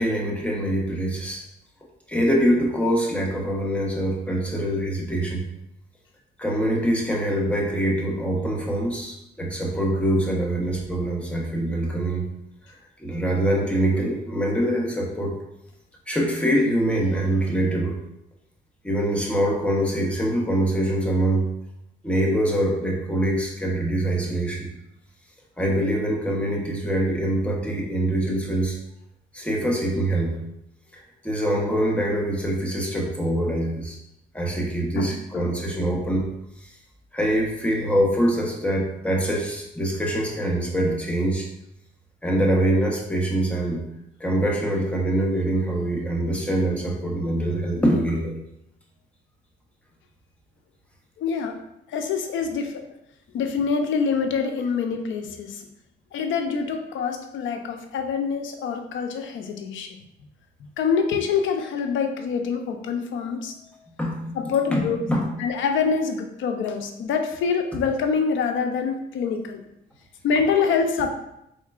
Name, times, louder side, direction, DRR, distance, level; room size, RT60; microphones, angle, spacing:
voice 1, 0.0-1.4 2.1-5.5 6.4-12.3 12.7-15.4 16.1-18.0 18.8-21.5 22.0-24.7 25.6-28.8 29.3-30.4 30.9-34.0 34.3-36.3 36.6-36.7 37.1-41.5 42.2-43.8 44.2-48.4 64.0-65.3, right 1 dB, 5° left, -1 dB, 1.0 m, -24 dB
voice 2, 35.0-35.5 51.2-51.6 51.9-52.8 53.3-55.7 56.1-60.0 60.8-63.5 64.4-65.0 65.4-69.6 70.2-71.1, left 5 dB, 75° left, 5 dB, 0.6 m, -25 dB
4.3 x 3.7 x 2.4 m, 0.82 s
cardioid pair, 90°, 20 cm